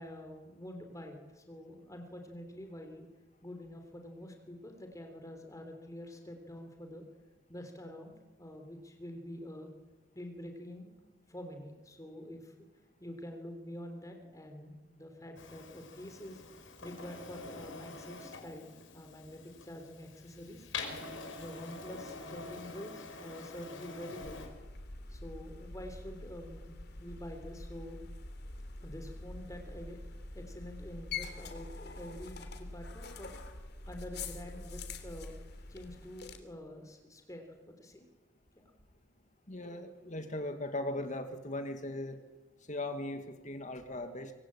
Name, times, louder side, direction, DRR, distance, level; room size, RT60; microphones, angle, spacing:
voice 1, 0.0-3.1 3.4-7.0 7.5-9.7 10.1-10.9 11.3-12.5 13.0-20.7 21.4-24.5 25.1-28.0 28.8-33.4 33.9-35.4 35.7-38.1 38.6-38.7, left 1 dB, 15° left, 4 dB, 3.5 m, -47 dB
Printer, 15.4-24.5, left 3 dB, 85° left, 5.8 m, -46 dB
sound 1, 24.2-36.4, left 3 dB, 60° left, 3.2 m, -45 dB
voice 2, 39.5-42.2 42.7-44.3, left 1 dB, 40° left, 7 dB, 2.2 m, -38 dB
26.0 x 25.0 x 8.9 m, 1.2 s
head